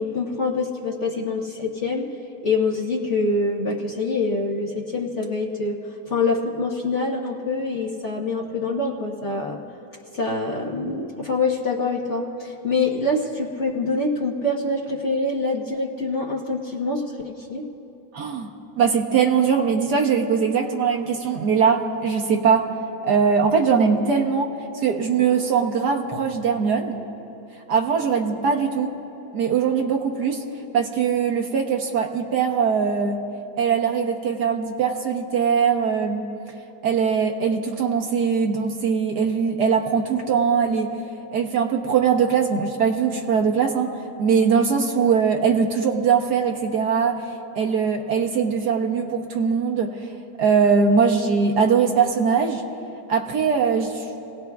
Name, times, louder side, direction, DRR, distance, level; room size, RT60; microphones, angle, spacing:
voice 1, 0.0-2.1 2.4-5.8 6.1-9.6 10.1-17.6, left 3 dB, 45° left, -2 dB, 1.1 m, -25 dB
voice 2, 18.1-18.5 18.8-22.7 23.0-24.5 24.8-27.0 27.7-28.9 29.3-30.4 30.7-33.2 33.6-36.3 36.8-40.9 41.3-47.2 47.5-49.9 50.4-52.6 53.1-54.0, right 6 dB, 60° right, 2 dB, 1.3 m, -21 dB
29.5 x 18.0 x 2.3 m, 2.9 s
omnidirectional pair, 2.1 m